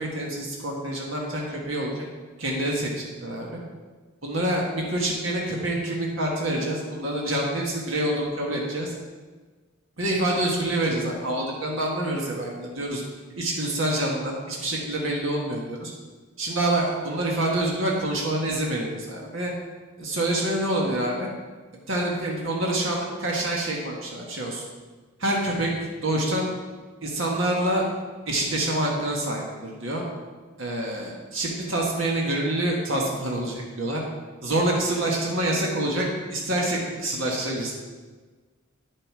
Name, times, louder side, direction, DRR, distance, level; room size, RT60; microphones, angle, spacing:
voice 1, 0.0-2.1 2.4-3.6 4.2-8.9 10.0-13.0 13.4-15.9 16.4-19.5 20.0-21.3 21.9-24.6 25.2-25.7 26.0-26.5 27.0-27.9 28.3-30.0 30.6-34.0 34.4-37.7, right 1 dB, 70° right, -2 dB, 1.7 m, -26 dB
10.5 x 7.8 x 4.8 m, 1.4 s
head